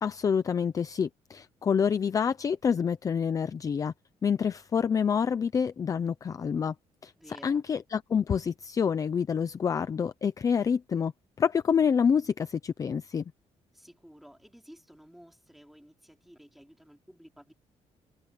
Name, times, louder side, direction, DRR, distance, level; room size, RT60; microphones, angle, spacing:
voice 1, 0.0-3.9 4.2-6.7 7.0-11.1 11.4-13.2, left 7 dB, 30° left, 0.6 m, -27 dB
voice 2, 7.2-7.7 13.7-17.5, equal, ahead, 3.5 m, -53 dB
cardioid pair, 170°, 12 cm